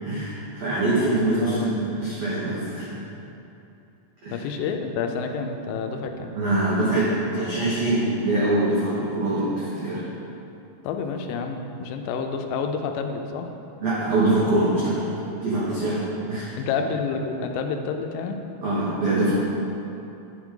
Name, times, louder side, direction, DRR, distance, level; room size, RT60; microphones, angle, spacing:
voice 1, 0.0-3.0 4.2-4.4 6.3-10.0 13.8-15.0 15.4-16.0 16.3-16.5 18.6-19.3, right 2 dB, 90° right, -9 dB, 1.5 m, -23 dB
voice 2, 1.4-1.8 4.3-6.3 10.8-13.5 16.6-18.4, left 5 dB, 85° left, 5 dB, 2.8 m, -29 dB
9.1 x 6.0 x 3.7 m, 2.8 s
omnidirectional pair, 5.0 m